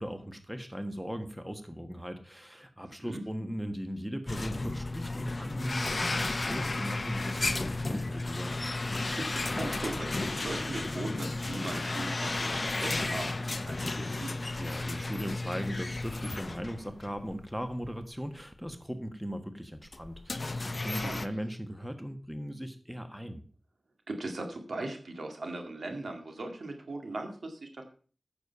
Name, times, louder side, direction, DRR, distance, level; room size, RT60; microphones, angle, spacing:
voice 1, 0.0-8.5 14.6-23.4, equal, 5° right, 8 dB, 1.4 m, -38 dB
sound 1, 4.3-17.3 17.7-17.9 18.7-18.8 19.9-21.3, left 2 dB, 50° left, 0.6 m, -33 dB
voice 2, 9.1-14.3 21.0-21.2 24.1-27.8, right 2 dB, 80° right, 4 dB, 2.0 m, -39 dB
9.1 x 7.1 x 5.7 m, 0.41 s
cardioid pair, 45°, 0 cm